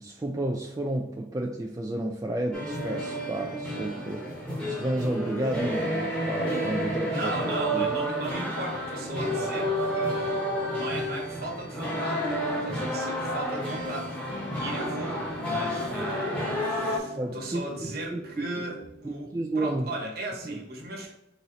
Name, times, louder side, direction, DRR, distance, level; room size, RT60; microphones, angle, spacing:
voice 1, 0.0-7.3 7.7-7.8 17.2-18.2 18.5-18.6 19.3-19.9 20.4-20.6, right 1 dB, 20° right, 0 dB, 0.3 m, -31 dB
sound 1, 2.5-17.0, equal, 5° left, 0.9 m, -30 dB
voice 2, 7.1-14.2 14.6-19.3 19.6-21.1, right 1 dB, 50° right, 0 dB, 1.1 m, -37 dB
sound 2, 14.3-19.3, left 1 dB, 60° left, 0.8 m, -42 dB
4.1 x 3.0 x 4.0 m, 0.88 s
head